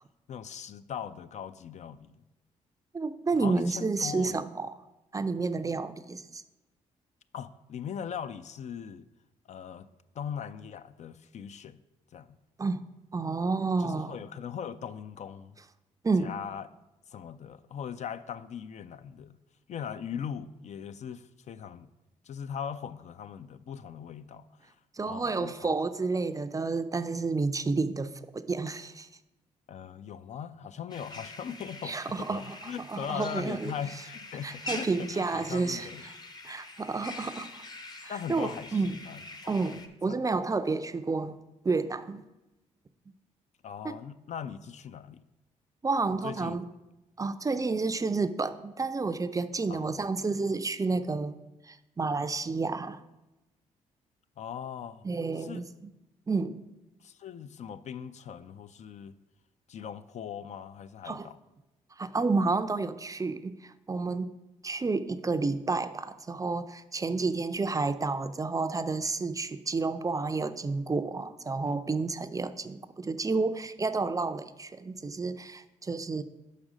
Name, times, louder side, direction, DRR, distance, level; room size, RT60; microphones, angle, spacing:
voice 1, 0.3-2.2 3.3-4.4 7.3-9.1 9.5-9.9 10.1-11.8 12.1-12.4 13.8-15.6 16.2-16.7 17.1-19.4 19.7-21.9 22.2-24.7 25.1-25.7 29.7-36.0 38.1-39.5 40.1-40.2 43.6-45.2 46.2-46.6 49.7-50.0 54.4-55.1 55.4-55.6 57.0-59.2 59.7-61.4, left 8 dB, 55° left, 0.4 m, -40 dB
voice 2, 2.9-4.7 5.1-6.4 12.6-12.8 13.1-14.2 16.0-16.3 24.9-29.1 31.8-32.6 32.9-33.7 34.4-35.9 36.4-37.6 38.0-39.0 39.5-41.4 41.6-42.2 43.8-44.0 45.8-46.7 47.2-51.4 51.7-53.0 55.0-55.9 56.3-56.6 61.0-61.3 62.0-64.3 64.6-76.2, right 3 dB, 25° right, 0.4 m, -30 dB
sound 1, 30.9-39.9, left 2 dB, 30° left, 0.8 m, -44 dB
5.4 x 5.0 x 6.1 m
supercardioid pair, 60°, 14 cm